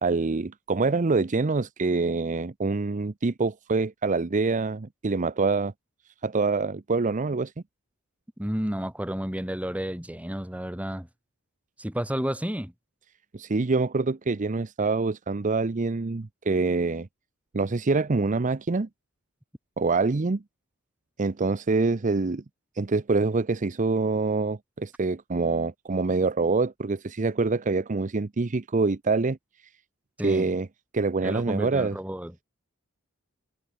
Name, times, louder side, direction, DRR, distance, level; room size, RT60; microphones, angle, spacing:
voice 1, 0.0-5.7 6.2-7.5 13.3-17.1 17.5-18.9 19.8-20.4 21.2-22.4 22.8-29.4 30.2-30.7 30.9-32.0, right 3 dB, 35° right, 0.6 m, -25 dB
voice 2, 8.4-11.1 11.8-12.7 30.2-30.5 31.2-32.4, equal, 5° right, 1.9 m, -31 dB
head